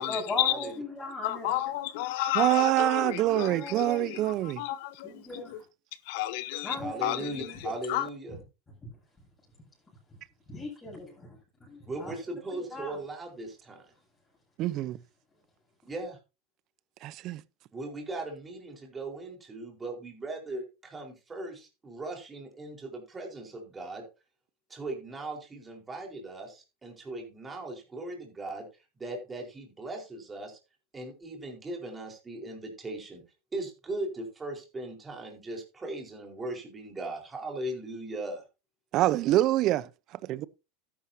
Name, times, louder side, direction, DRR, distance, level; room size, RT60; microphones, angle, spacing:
voice 1, 0.1-1.8 3.0-4.4 5.0-5.6 6.6-7.6 8.3-8.4 8.8-9.0 10.5-12.2 12.5-13.0, left 2 dB, 15° left, 7.5 m, -39 dB
voice 2, 1.2-3.0 3.4-3.5 3.8-3.9 4.6-5.1 6.1-6.7 7.0-7.2 7.9-8.0, left 15 dB, 65° left, 1.1 m, -30 dB
voice 3, 2.3-4.6 14.6-15.0 17.0-17.4 38.9-39.8 40.3-40.5, right 15 dB, 45° right, 0.7 m, -25 dB
voice 4, 6.8-8.4 11.9-13.8 15.8-16.2 17.7-24.0 24.7-28.7 29.0-30.6 30.9-33.2 33.5-38.4, right 2 dB, 15° right, 4.4 m, -38 dB
13.0 x 11.0 x 2.8 m
supercardioid pair, 135°, 0 cm